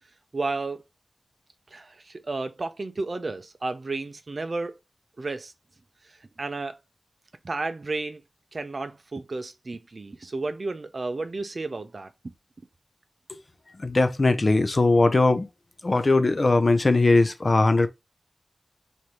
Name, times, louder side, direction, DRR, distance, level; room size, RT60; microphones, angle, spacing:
voice 1, 0.3-0.8 1.7-4.8 5.2-5.5 6.1-6.8 7.4-8.2 8.5-12.1, right 3 dB, 55° right, 0.5 m, -32 dB
voice 2, 13.8-15.5 15.8-17.9, left 2 dB, 45° left, 0.6 m, -20 dB
4.7 x 2.6 x 2.9 m
wide cardioid pair, 95°, 0 cm